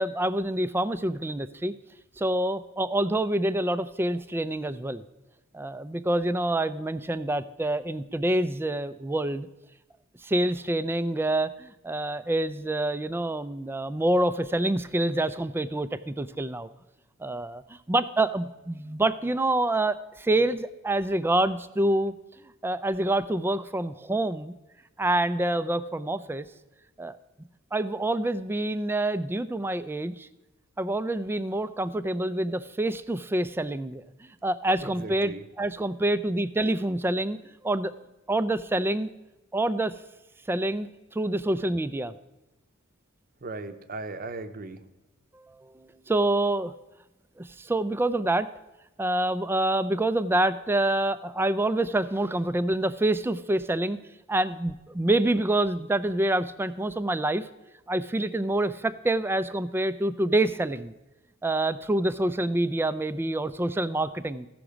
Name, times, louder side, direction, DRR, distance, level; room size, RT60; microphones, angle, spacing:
voice 1, 0.0-1.7 2.2-5.0 5.5-9.5 10.2-16.7 17.2-22.1 22.6-24.5 25.0-26.5 27.0-27.2 27.7-30.3 30.8-37.4 37.6-37.9 38.3-39.1 39.5-40.0 40.5-42.1 45.3-46.7 47.4-48.5 49.0-54.0 54.3-57.5 57.9-60.9 61.4-64.5, right 1 dB, 10° right, 14 dB, 0.3 m, -27 dB
voice 2, 34.8-35.4 43.4-44.8, right 2 dB, 45° right, 9 dB, 0.7 m, -37 dB
15.0 x 6.0 x 5.0 m, 1.0 s
head